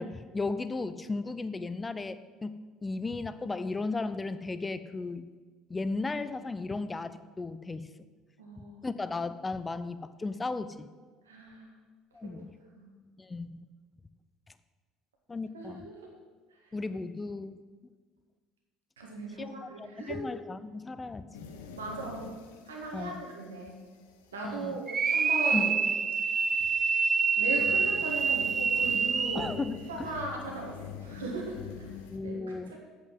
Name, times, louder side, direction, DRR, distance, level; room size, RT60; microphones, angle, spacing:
voice 1, 0.0-2.6 2.8-5.3 5.7-7.9 8.6-10.9 12.1-12.5 13.2-13.6 15.3-15.8 16.7-17.6 19.4-21.5 22.9-23.2 24.4-24.8 25.5-25.6 29.3-30.1 32.1-32.8, left 3 dB, 20° left, 13 dB, 0.6 m, -35 dB
voice 2, 8.4-8.8 11.2-11.7 12.2-12.4 12.8-12.9 15.5-16.1 19.0-20.2 21.8-23.8 24.3-25.8 27.4-29.5 29.9-32.8, right 3 dB, 80° right, 0 dB, 1.8 m, -38 dB
sound 1, 21.3-27.0 27.5-32.2, left 6 dB, 70° left, 0.8 m, -46 dB
sound 2, 24.9-29.6, right 5 dB, 30° right, 0.5 m, -27 dB
8.4 x 6.3 x 7.6 m, 1.4 s
figure-of-eight pair, 60°, 0 cm